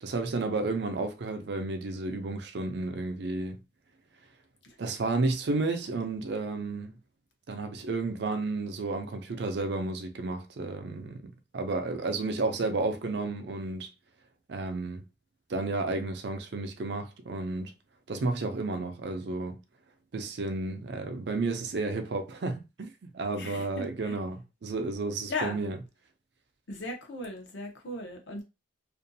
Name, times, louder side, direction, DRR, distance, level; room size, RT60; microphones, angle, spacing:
voice 1, 0.0-3.6 4.8-6.9 7.5-13.9 14.5-15.1 15.5-17.7 18.1-19.6 20.1-25.8, right 3 dB, 55° right, 0.4 m, -32 dB
voice 2, 23.4-24.1 25.3-25.6 26.7-28.4, left 2 dB, 60° left, 0.8 m, -37 dB
2.5 x 2.3 x 2.6 m
head